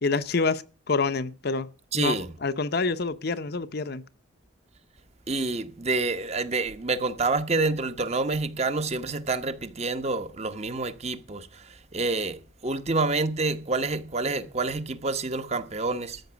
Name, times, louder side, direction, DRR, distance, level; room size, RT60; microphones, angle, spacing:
voice 1, 0.0-1.7 1.9-4.0, left 4 dB, 50° left, 0.7 m, -27 dB
voice 2, 1.9-2.3 5.3-16.2, right 3 dB, 30° right, 0.9 m, -28 dB
13.0 x 6.0 x 7.9 m
head